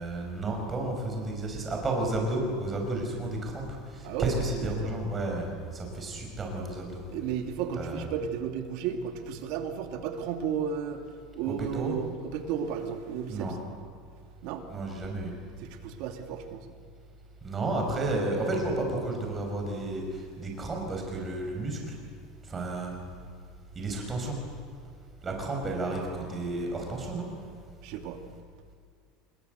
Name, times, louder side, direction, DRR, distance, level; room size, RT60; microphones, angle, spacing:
voice 1, 0.0-7.0 7.7-8.1 11.4-12.0 13.3-13.6 14.7-15.3 17.4-21.9 22.4-23.0 23.8-24.4 25.2-27.3, right 2 dB, 15° right, 1 dB, 5.4 m, -32 dB
voice 2, 4.6-4.9 7.1-11.0 11.3-13.6 14.4-14.7 15.6-16.7 27.8-28.2, right 8 dB, 55° right, 6 dB, 2.4 m, -33 dB
26.0 x 21.5 x 8.1 m, 2.1 s
cardioid pair, 170°, 0 cm